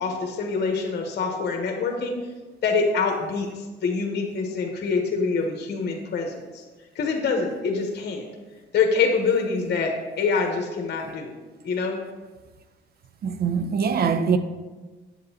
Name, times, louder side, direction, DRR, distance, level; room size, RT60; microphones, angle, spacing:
voice 1, 0.0-2.1 2.6-6.4 6.9-8.2 8.7-11.3 11.6-12.0, left 4 dB, 55° left, 1.1 m, -25 dB
voice 2, 13.2-14.4, right 6 dB, 50° right, 0.5 m, -23 dB
7.6 x 7.6 x 2.8 m
cardioid pair, 90°, 20 cm